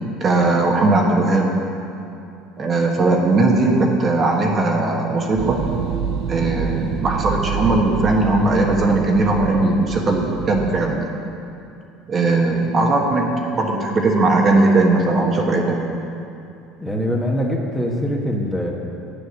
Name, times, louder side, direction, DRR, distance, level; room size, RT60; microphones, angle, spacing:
voice 1, 0.2-1.6 2.6-5.6 6.3-11.1 12.1-15.9, right 2 dB, 35° right, 0 dB, 1.3 m, -18 dB
sound 1, 5.4-11.0, right 7 dB, 60° right, 0.5 m, -27 dB
voice 2, 16.8-18.7, equal, 5° left, -1 dB, 1.4 m, -23 dB
9.0 x 7.0 x 6.5 m, 2.7 s
supercardioid pair, 100°, 0 cm